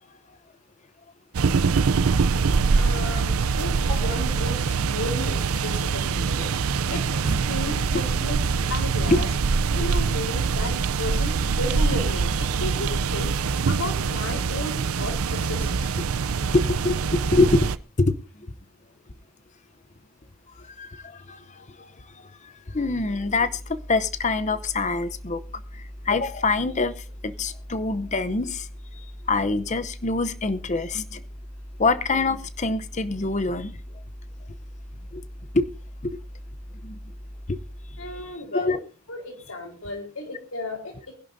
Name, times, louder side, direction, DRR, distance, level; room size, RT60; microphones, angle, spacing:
sound 1, 1.3-17.8, right 5 dB, 85° right, 0.5 m, -24 dB
voice 1, 2.7-6.5 6.9-7.2 7.5-8.4 8.7-9.3 9.7-13.3 13.7-15.9 38.0-38.8 39.1-41.0, left 2 dB, 80° left, 3 dB, 4.1 m, -34 dB
voice 2, 16.5-17.7 18.0-18.2 20.8-21.6 22.7-23.5 23.9-25.4 26.1-26.9 27.2-28.7 29.3-31.2 31.8-33.8 35.1-35.2 35.5-35.7 36.0-36.2 36.8-37.0 37.5-37.6 38.5-38.8, left 3 dB, 35° left, 13 dB, 0.8 m, -24 dB
sound 2, 22.7-38.2, equal, 5° left, 1.1 m, -41 dB
23.0 x 11.0 x 2.7 m, 0.33 s
head